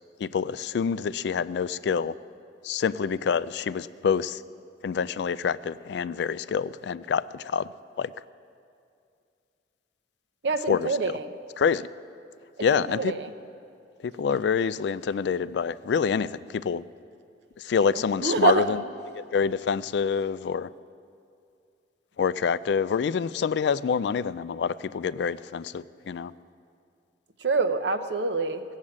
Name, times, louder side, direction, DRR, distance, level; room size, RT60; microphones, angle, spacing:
voice 1, 0.2-2.1 2.6-4.4 4.8-7.7 8.0-8.1 10.7-10.9 11.6-11.9 12.6-13.1 14.0-16.8 17.6-18.8 19.2-20.7 22.2-26.3, left 6 dB, 65° left, 17 dB, 0.3 m, -26 dB
voice 2, 10.4-11.3 12.7-13.3 17.9-18.8 27.4-28.6, right 4 dB, 65° right, 8 dB, 0.7 m, -26 dB
17.0 x 7.4 x 8.7 m, 2.4 s
head